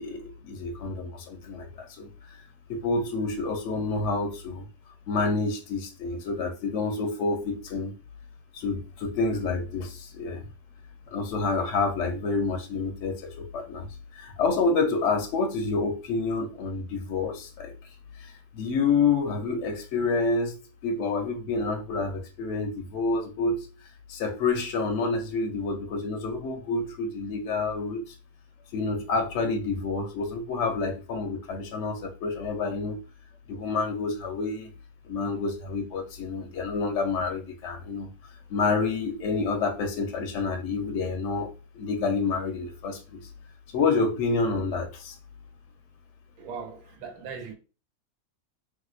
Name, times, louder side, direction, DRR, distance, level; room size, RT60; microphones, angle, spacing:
voice 1, 0.0-2.4 2.7-4.6 5.1-7.9 8.5-10.5 11.1-13.9 14.1-17.7 18.2-23.7 24.1-28.1 28.7-33.0 33.5-34.7 35.0-38.1 38.5-41.5 41.7-43.3 43.7-45.2, left 4 dB, 65° left, 0.7 m, -28 dB
voice 2, 46.4-47.5, right 5 dB, 80° right, 1.1 m, -39 dB
3.2 x 2.8 x 2.4 m
omnidirectional pair, 1.5 m